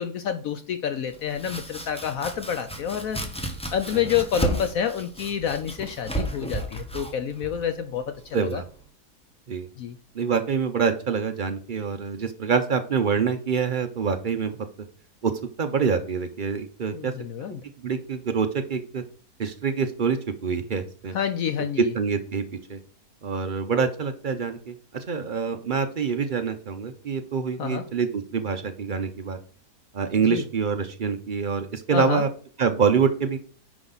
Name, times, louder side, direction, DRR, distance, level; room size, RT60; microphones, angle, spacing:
voice 1, 0.0-3.2 3.7-8.6 9.8-10.0 16.9-17.6 21.1-21.9 27.6-27.8 30.2-30.4 31.9-32.2, left 8 dB, 65° left, 9 dB, 0.9 m, -28 dB
Domestic sounds home sounds, 1.1-8.8, right 1 dB, 5° left, 0.8 m, -34 dB
voice 2, 8.3-8.6 9.5-9.7 10.1-14.6 15.2-15.3 15.6-17.1 17.8-19.0 19.4-21.1 21.9-22.4 22.7-22.8 23.2-29.4 29.9-32.3 32.6-33.4, right 6 dB, 60° right, 7 dB, 0.5 m, -26 dB
9.7 x 5.2 x 4.0 m, 0.44 s
omnidirectional pair, 1.7 m